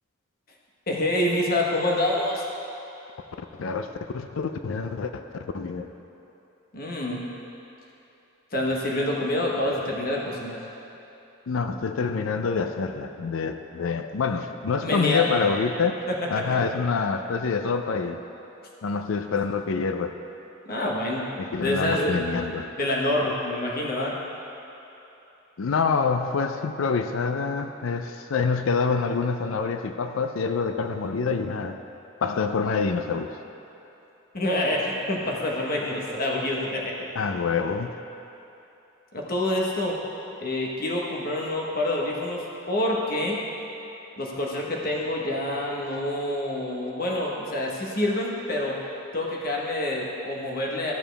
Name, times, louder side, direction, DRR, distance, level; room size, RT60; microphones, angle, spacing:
voice 1, 0.9-2.4 6.7-7.3 8.5-10.6 14.8-15.5 16.1-16.5 20.7-21.3 21.6-22.2 22.8-24.1 34.3-37.1 39.1-40.0 40.4-43.4 44.2-48.8 49.1-50.9, left 1 dB, 45° left, -2 dB, 1.1 m, -27 dB
voice 2, 3.4-5.9 11.5-16.0 16.3-18.2 18.8-20.2 21.4-22.7 25.6-31.8 32.2-33.3 37.2-38.0, left 5 dB, 80° left, 7 dB, 0.4 m, -26 dB
14.0 x 7.1 x 3.4 m, 2.9 s
head